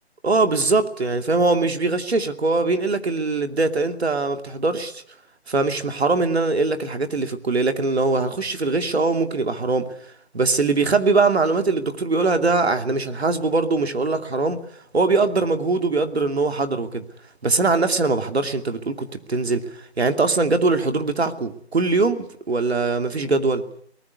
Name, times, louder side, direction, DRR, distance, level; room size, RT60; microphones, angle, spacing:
voice 1, 0.2-5.0 5.5-9.9 10.3-14.6 14.9-17.0 17.4-23.6, right 3 dB, 70° right, 7 dB, 2.7 m, -22 dB
24.0 x 19.0 x 8.3 m, 0.65 s
hypercardioid pair, 175°, 33 cm